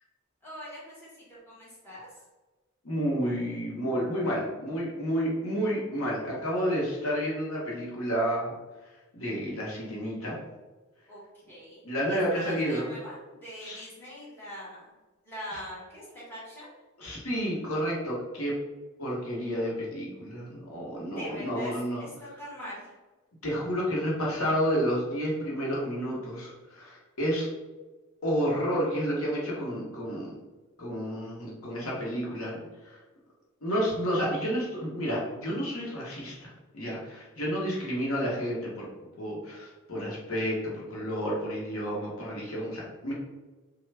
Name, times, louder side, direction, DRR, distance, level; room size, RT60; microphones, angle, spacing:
voice 1, 0.4-2.1 11.1-11.2 11.5-11.8 12.1-14.9 15.2-16.7 21.0-21.7 22.0-22.8, equal, 10° left, -9 dB, 1.2 m, -42 dB
voice 2, 2.8-8.5 9.1-10.4 11.8-12.9 13.6-13.9 17.0-18.5 19.0-22.0 23.4-27.5 28.2-30.3 30.8-32.6 32.8-33.0 33.6-38.9 39.2-43.1, equal, 75° left, -4 dB, 1.0 m, -30 dB
3.2 x 2.3 x 3.2 m, 1.2 s
head